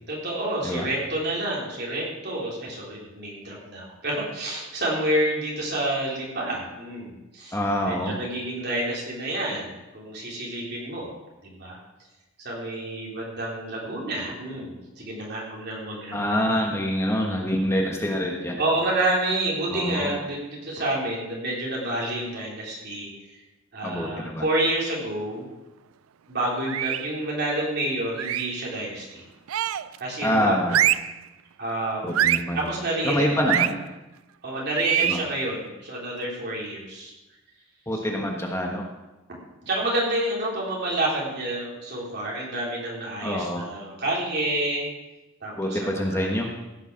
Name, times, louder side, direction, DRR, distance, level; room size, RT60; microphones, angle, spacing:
voice 1, 0.1-7.6 7.8-11.1 11.4-11.8 12.4-16.3 18.6-23.1 23.7-25.5 26.3-29.2 30.0-30.8 31.6-32.3 32.5-33.3 33.5-33.6 34.4-37.1 38.0-38.3 39.7-44.8 45.4-46.3, right 1 dB, 55° right, -4 dB, 3.9 m, -29 dB
voice 2, 7.5-8.2 16.1-18.6 19.7-20.1 23.8-24.5 30.2-30.8 32.0-32.7 33.0-33.7 35.0-35.2 37.9-38.9 43.2-43.7 45.6-46.5, equal, 15° left, 0 dB, 1.3 m, -26 dB
sound 1, 26.7-27.1 28.2-28.6 29.5-30.0 30.7-31.2 32.1-32.5 33.5-33.7 34.8-35.3, right 12 dB, 90° right, 0.4 m, -24 dB
15.5 x 6.6 x 6.3 m, 1.0 s
head